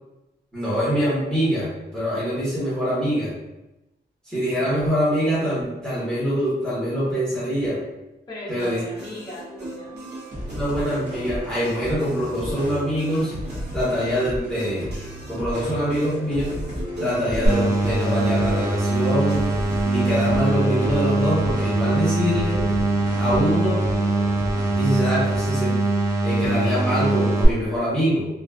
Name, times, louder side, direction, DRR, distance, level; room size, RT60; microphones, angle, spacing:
voice 1, 0.5-3.3 4.3-7.8 8.5-8.8 10.5-13.3 13.7-14.9 15.3-16.6 17.0-19.5 19.8-22.7 23.2-23.8 24.7-25.8 26.2-28.3, equal, 5° left, -10 dB, 1.1 m, -24 dB
voice 2, 8.3-10.0, left 1 dB, 25° left, -8 dB, 0.8 m, -38 dB
sound 1, 8.6-21.1, equal, 70° right, 0.7 m, -37 dB
sound 2, 9.8-25.4, equal, 50° right, 0.9 m, -35 dB
sound 3, 17.5-27.5, right 2 dB, 15° right, 0.5 m, -22 dB
2.4 x 2.4 x 2.3 m, 0.96 s
wide cardioid pair, 120°, 18 cm